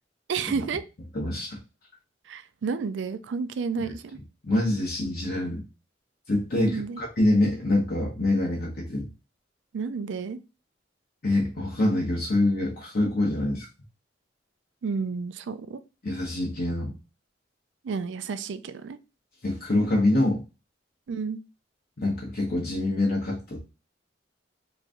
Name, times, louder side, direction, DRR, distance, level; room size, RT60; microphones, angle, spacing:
voice 1, 0.3-0.8 2.3-4.2 6.6-7.0 9.7-10.4 14.8-15.8 17.8-19.0 21.1-21.4, right 5 dB, 80° right, 12 dB, 0.4 m, -31 dB
voice 2, 1.1-1.6 4.4-5.6 6.3-9.1 11.2-13.7 16.0-17.0 19.4-20.4 22.0-23.6, left 1 dB, 55° left, -4 dB, 1.0 m, -25 dB
3.1 x 2.6 x 3.6 m, 0.30 s
head